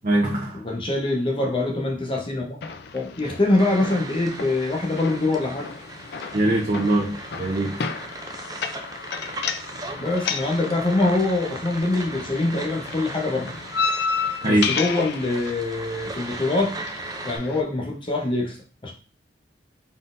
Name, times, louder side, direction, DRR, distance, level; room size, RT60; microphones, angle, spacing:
voice 1, 0.0-0.6 6.3-7.8 14.4-14.7, right 1 dB, 45° right, -6 dB, 0.9 m, -22 dB
voice 2, 0.5-2.6 2.9-5.7 10.0-13.5 14.5-16.7 17.2-18.6 18.8-18.9, left 2 dB, 30° left, 0 dB, 0.8 m, -24 dB
sound 1, 2.6-17.6, left 5 dB, 60° left, 0.4 m, -33 dB
sound 2, 3.6-17.4, right 2 dB, 20° right, 0.5 m, -38 dB
4.1 x 3.7 x 2.6 m, 0.37 s
head